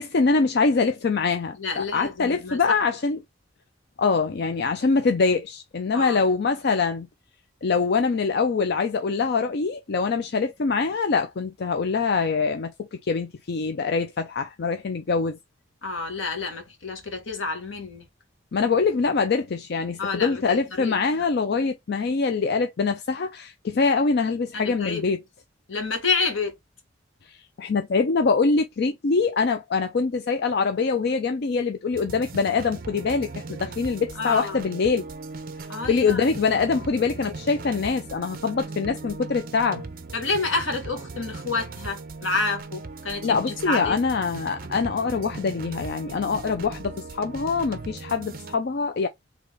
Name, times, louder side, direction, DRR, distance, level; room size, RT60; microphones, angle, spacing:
voice 1, 0.0-3.2 4.0-7.1 7.6-15.4 18.5-25.2 27.3-35.1 35.9-39.8 43.2-49.1, left 4 dB, 55° left, 0.5 m, -24 dB
voice 2, 1.6-2.8 5.9-6.2 15.8-18.1 20.0-21.3 24.5-25.0 25.7-26.5 34.1-34.6 35.7-36.8 40.1-44.0, left 3 dB, 80° left, 1.4 m, -29 dB
sound 1, 31.9-48.6, right 3 dB, 50° right, 0.6 m, -38 dB
3.9 x 2.9 x 3.3 m
head